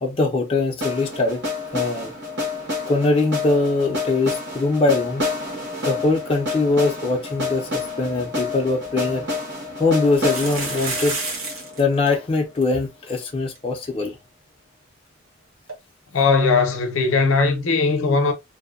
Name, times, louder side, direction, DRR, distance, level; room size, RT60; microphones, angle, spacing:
voice 1, 0.0-1.4 1.7-2.1 2.9-5.3 5.8-9.3 9.8-11.2 11.8-14.2, left 3 dB, 25° left, 0.4 m, -22 dB
sound 1, 0.8-12.7, left 3 dB, 55° right, 1.0 m, -29 dB
sound 2, 8.8-8.9 10.0-11.8 12.1-12.2 12.4-12.6 13.2-13.3 13.6-13.7 15.7-15.8, right 3 dB, 85° right, 1.0 m, -30 dB
voice 2, 16.1-18.3, left 4 dB, 75° left, 0.5 m, -19 dB
2.6 x 2.1 x 2.3 m
head